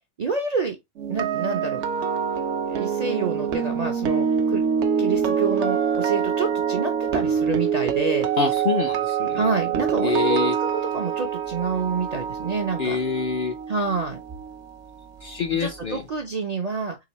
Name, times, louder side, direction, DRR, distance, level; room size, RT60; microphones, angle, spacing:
voice 1, 0.2-0.8 1.1-1.8 2.7-4.6 5.0-8.3 9.3-10.7 10.9-13.0 13.7-14.2 15.6-17.0, right 4 dB, 50° right, 0.5 m, -28 dB
sound 1, 1.0-15.0 15.3-15.6, right 7 dB, 70° right, 0.9 m, -25 dB
voice 2, 8.4-9.4 10.0-10.6 12.8-13.6 15.2-16.0, left 5 dB, 60° left, 0.6 m, -26 dB
3.8 x 3.3 x 2.9 m
omnidirectional pair, 1.3 m